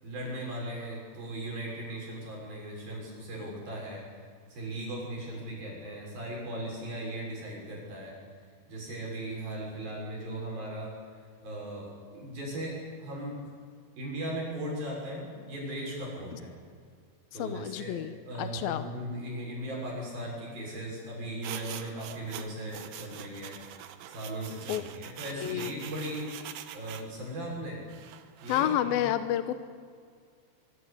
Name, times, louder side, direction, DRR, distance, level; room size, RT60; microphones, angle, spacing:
voice 1, 0.0-4.0 4.5-8.2 8.7-10.9 11.4-13.4 14.0-16.5 17.3-23.6 24.1-26.3 26.7-27.8 28.4-29.0, right 1 dB, 50° right, -2 dB, 8.4 m, -38 dB
voice 2, 17.4-18.8 24.7-24.8 25.3-25.7 28.5-29.5, left 12 dB, 80° left, 11 dB, 2.2 m, -30 dB
sound 1, 21.4-27.1 27.9-28.7, right 11 dB, 80° right, 3.8 m, -44 dB
25.5 x 23.0 x 8.4 m, 2.1 s
omnidirectional pair, 5.5 m